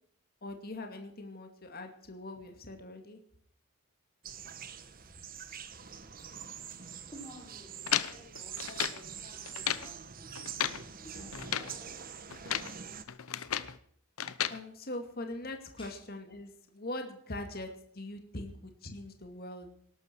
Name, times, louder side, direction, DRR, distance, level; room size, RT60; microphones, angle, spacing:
voice 1, 0.4-3.2 11.1-11.5 14.5-19.7, left 1 dB, 45° left, 5 dB, 2.4 m, -42 dB
sound 1, 4.2-13.0, right 8 dB, 40° right, 1.2 m, -45 dB
voice 2, 7.1-10.5 11.0-12.5 15.8-15.9, equal, 25° left, -3 dB, 7.1 m, -53 dB
sound 2, 7.9-9.0 9.5-9.9 10.4-10.8 11.3-11.8 12.3-12.8 13.1-13.8 14.2-14.6, left 10 dB, 80° left, 0.9 m, -34 dB
19.0 x 12.0 x 4.6 m, 0.62 s
head